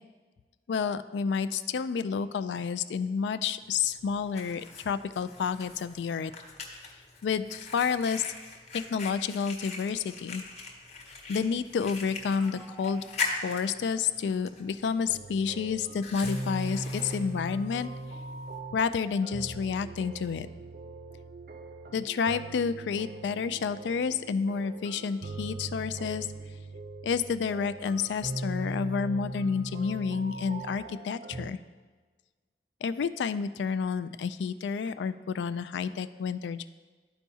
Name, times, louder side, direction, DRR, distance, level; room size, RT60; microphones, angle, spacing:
voice 1, 0.7-6.3 7.2-8.3 8.7-10.4 11.3-13.1 13.4-17.9 18.7-20.5 21.9-26.3 27.0-31.6 32.8-36.7, left 6 dB, 80° left, 14 dB, 0.3 m, -30 dB
Fire, 3.6-18.6, left 4 dB, 35° left, 0.9 m, -41 dB
sound 1, 11.8-15.2, right 1 dB, 5° right, 0.6 m, -50 dB
sound 2, 15.1-31.5, right 2 dB, 55° right, 0.5 m, -40 dB
12.5 x 4.5 x 2.7 m, 1.4 s
head